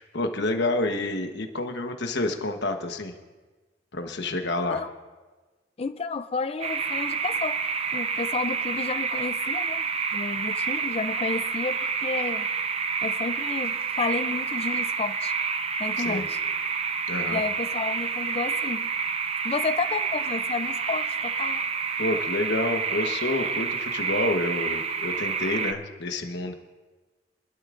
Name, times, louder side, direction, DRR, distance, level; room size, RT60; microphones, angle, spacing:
voice 1, 0.0-3.1 3.9-4.8 16.0-16.3 17.1-17.4 22.0-26.5, left 2 dB, 65° left, 5 dB, 1.2 m, -28 dB
voice 2, 5.8-7.6 7.9-9.9 10.1-12.5 13.0-15.3 15.8-16.4 17.3-18.9 19.4-21.6, left 4 dB, 30° left, 10 dB, 0.5 m, -31 dB
sound 1, 6.6-25.7, right 5 dB, 35° right, 0.5 m, -28 dB
25.0 x 12.0 x 2.6 m, 1.3 s
head